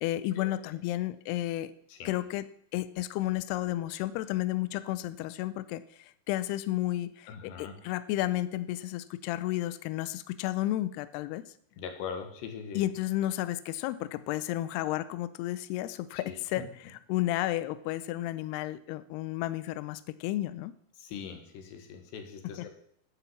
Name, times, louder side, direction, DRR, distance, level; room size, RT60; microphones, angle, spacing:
voice 1, 0.0-1.7 2.1-2.5 2.7-11.4 12.8-16.7 17.1-20.7 22.6-22.7, left 15 dB, 85° left, 14 dB, 2.3 m, -32 dB
voice 2, 7.3-7.8 11.8-12.9 16.2-16.4 21.0-22.7, left 7 dB, 70° left, 6 dB, 3.6 m, -41 dB
10.0 x 9.0 x 7.3 m, 0.68 s
omnidirectional pair, 5.3 m